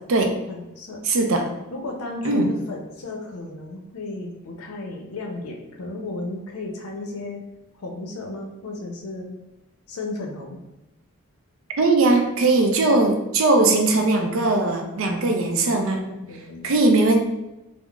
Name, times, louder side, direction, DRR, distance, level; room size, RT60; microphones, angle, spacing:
voice 1, 0.5-1.0 1.7-7.4 7.7-9.3 9.9-10.6 13.6-14.1 15.1-15.4 16.2-16.7, left 2 dB, 90° left, 1 dB, 0.6 m, -34 dB
voice 2, 1.0-1.5 2.2-2.5 11.8-16.0 16.6-17.2, right 2 dB, 65° right, 4 dB, 0.4 m, -19 dB
3.6 x 2.0 x 2.3 m, 0.97 s
head